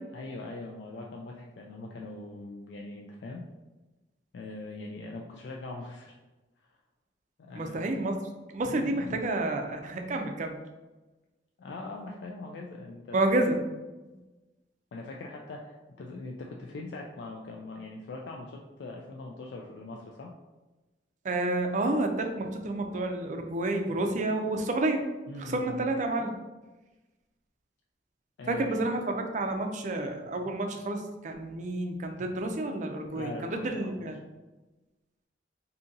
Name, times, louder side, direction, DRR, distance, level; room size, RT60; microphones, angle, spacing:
voice 1, 0.1-3.4 4.3-6.2 6.6-6.8 7.4-7.9 8.7-9.1 11.6-13.2 14.9-20.3 25.3-25.8 28.4-28.9 33.1-34.1, left 2 dB, 70° left, 0 dB, 0.3 m, -41 dB
voice 2, 7.5-8.2 8.5-10.6 13.1-13.6 21.2-25.0 25.4-26.3 28.5-34.2, right 2 dB, 45° right, 4 dB, 0.4 m, -30 dB
3.8 x 2.7 x 2.6 m, 1.1 s
head